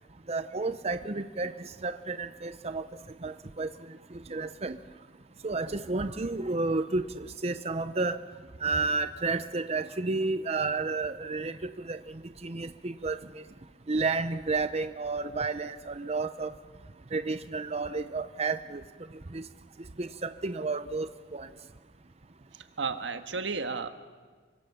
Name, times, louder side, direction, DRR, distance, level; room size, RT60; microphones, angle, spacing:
voice 1, 0.3-2.9 3.2-3.7 4.1-4.8 5.4-8.2 8.6-13.4 13.9-16.5 17.1-18.8 19.3-19.4 20.0-21.5, right 3 dB, 35° right, 10 dB, 0.8 m, -31 dB
voice 2, 22.5-23.9, right 4 dB, 85° right, 8 dB, 1.6 m, -33 dB
28.5 x 24.5 x 6.9 m, 1.5 s
head